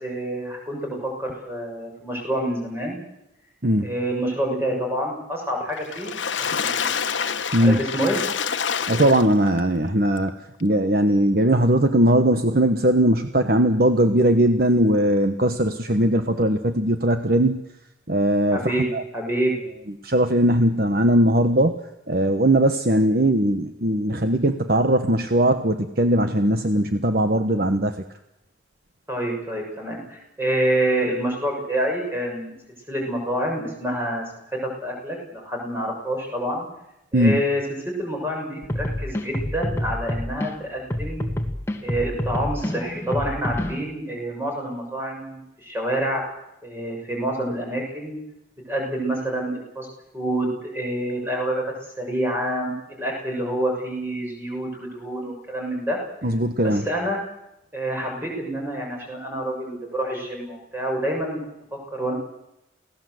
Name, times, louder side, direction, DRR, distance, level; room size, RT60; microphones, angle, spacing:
voice 1, 0.0-3.0 3.8-6.2 6.5-6.9 7.6-8.2 18.5-19.6 29.1-32.5 32.9-36.7 37.1-41.2 41.8-46.2 46.6-48.2 48.7-49.9 50.1-51.6 52.0-56.0 56.6-57.2 57.7-61.4 61.7-62.1, right 1 dB, 10° right, 0 dB, 6.6 m, -27 dB
Water / Splash splatter, 5.8-9.6 10.2-10.3 10.6-10.7, left 7 dB, 75° left, 1.2 m, -27 dB
voice 2, 8.9-10.3 10.6-17.6 18.1-19.0 20.0-21.8 22.1-28.0 37.1-37.4 56.2-56.8, right 1 dB, 50° right, 7 dB, 1.3 m, -19 dB
sound 1, 38.6-40.5 40.9-43.8, left 1 dB, 15° left, 1.8 m, -28 dB
28.5 x 17.5 x 7.9 m, 0.88 s
head